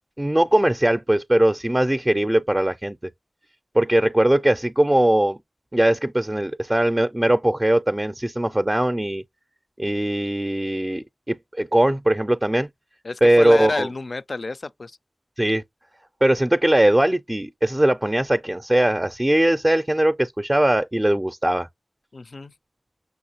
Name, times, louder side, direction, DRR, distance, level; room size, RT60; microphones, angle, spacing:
voice 1, 0.2-3.0 3.7-5.4 5.7-9.2 9.8-12.7 13.2-13.9 15.4-15.6 16.2-21.7, right 1 dB, 25° right, 0.4 m, -20 dB
voice 2, 13.0-15.0 22.1-22.5, left 3 dB, 75° left, 0.3 m, -29 dB
6.2 x 2.7 x 2.8 m
wide cardioid pair, 50°, 0 cm